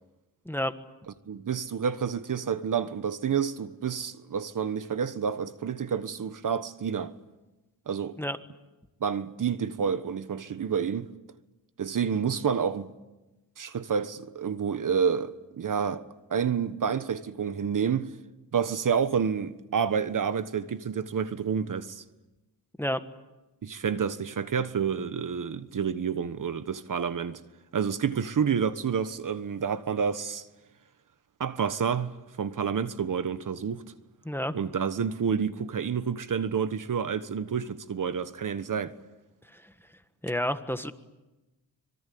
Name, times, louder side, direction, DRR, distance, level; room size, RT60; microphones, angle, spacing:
voice 1, 1.3-7.1 7.9-8.2 9.0-11.1 11.8-12.9 13.6-16.0 16.3-18.1 18.5-22.0 23.6-27.4 27.7-30.5 31.4-33.8 34.5-38.9, right 7 dB, 50° right, 1.3 m, -29 dB
voice 2, 40.2-40.9, equal, 5° left, 1.5 m, -29 dB
26.0 x 23.0 x 8.6 m
cardioid pair, 90°, 42 cm